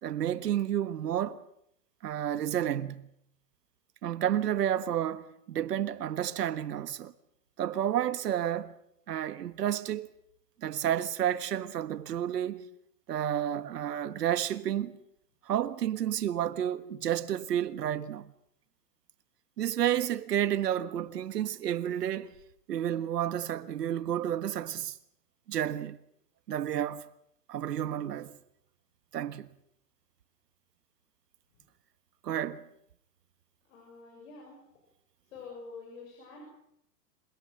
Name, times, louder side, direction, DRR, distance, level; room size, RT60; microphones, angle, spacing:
voice 1, 0.0-1.4 2.0-3.1 4.0-7.1 7.6-8.8 9.1-10.1 10.6-12.7 13.1-14.9 15.5-18.3 19.6-22.3 22.7-25.0 25.5-26.0 26.5-27.0 27.5-28.4 29.1-29.5 32.2-32.6, right 10 dB, 85° right, 1.6 m, -31 dB
voice 2, 33.6-34.6 35.2-36.4, left 4 dB, 55° left, 7.8 m, -47 dB
27.5 x 18.0 x 7.8 m
hypercardioid pair, 165°, 47 cm